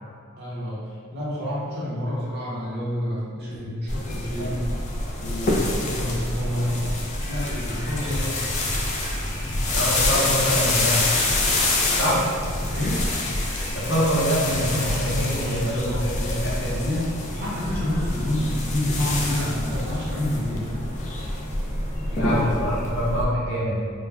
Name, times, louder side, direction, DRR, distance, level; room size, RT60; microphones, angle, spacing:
voice 1, 0.4-4.6 5.2-6.8 7.2-8.5 12.1-12.2 12.7-13.1 15.3-20.9 22.0-22.4 22.7-22.9, left 1 dB, 50° right, -7 dB, 0.7 m, -29 dB
sound 1, 3.9-23.3, left 2 dB, 35° left, 0.3 m, -26 dB
sound 2, 6.4-15.0, equal, 85° right, 0.4 m, -39 dB
voice 2, 9.7-11.0 12.0-12.2 13.7-16.8 22.1-23.8, equal, 55° left, -7 dB, 0.8 m, -25 dB
2.2 x 2.1 x 3.3 m, 2.2 s
head